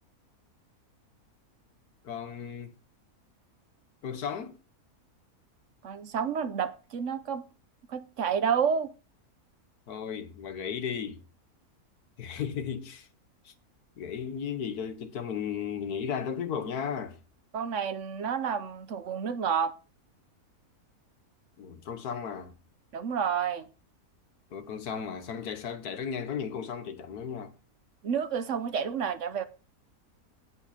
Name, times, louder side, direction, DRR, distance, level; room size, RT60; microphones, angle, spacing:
voice 1, 2.0-2.7 4.0-4.6 9.9-11.2 12.2-13.1 13.5-13.6 14.0-17.2 21.6-22.6 24.5-27.5, left 7 dB, 90° left, 1.7 m, -35 dB
voice 2, 5.8-7.4 7.9-8.9 17.5-19.7 22.9-23.7 28.0-29.5, right 7 dB, 60° right, 1.1 m, -30 dB
16.5 x 5.6 x 4.3 m
omnidirectional pair, 1.6 m